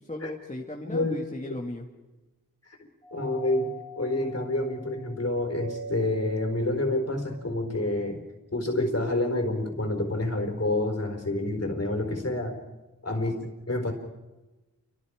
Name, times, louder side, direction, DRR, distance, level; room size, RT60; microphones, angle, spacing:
voice 1, 0.1-1.9 13.1-13.5, left 1 dB, 20° left, 0 dB, 1.8 m, -37 dB
voice 2, 0.9-1.2 3.1-8.2 8.5-12.6 13.0-13.3 13.7-13.9, left 2 dB, 45° left, 4 dB, 4.2 m, -28 dB
Doorbell, 3.0-7.9, right 1 dB, 90° right, 2.4 m, -43 dB
29.5 x 24.5 x 5.0 m, 1.1 s
wide cardioid pair, 45°, 36 cm